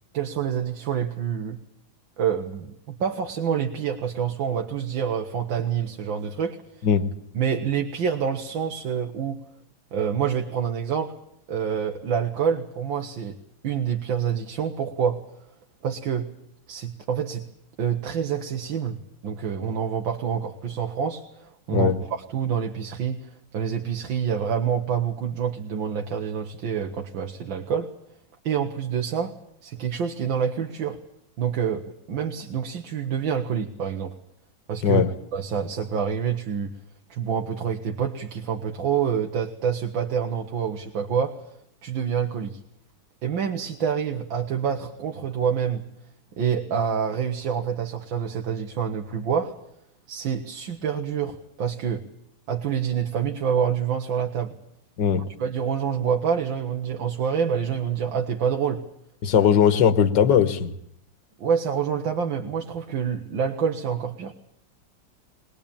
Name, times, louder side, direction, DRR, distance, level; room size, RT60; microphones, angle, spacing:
voice 1, 0.1-1.6 2.2-6.9 7.3-9.4 9.9-11.1 11.5-13.4 13.6-15.2 15.8-16.3 16.7-17.5 17.8-19.0 19.2-27.9 28.4-29.3 29.6-31.0 31.4-34.1 34.7-35.0 35.3-36.7 37.1-41.4 41.8-42.6 43.2-45.8 46.4-49.5 50.1-52.0 52.5-54.6 55.4-58.8 59.4-59.5 61.4-64.3, right 7 dB, 85° right, 1.9 m, -27 dB
voice 2, 59.2-60.7, left 8 dB, 65° left, 1.8 m, -19 dB
22.0 x 20.0 x 8.8 m
omnidirectional pair, 2.1 m